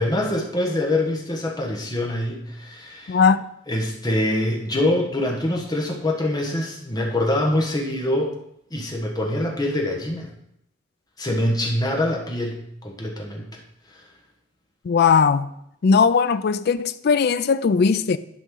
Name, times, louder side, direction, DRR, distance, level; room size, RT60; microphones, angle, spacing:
voice 1, 0.0-3.2 3.7-8.3 8.7-10.3 11.2-13.6 13.9-14.0, left 1 dB, 20° left, 1.3 m, -24 dB
voice 2, 3.1-3.5 14.8-15.5 15.8-18.2, left 5 dB, 55° left, 0.4 m, -18 dB
11.0 x 5.3 x 3.8 m
head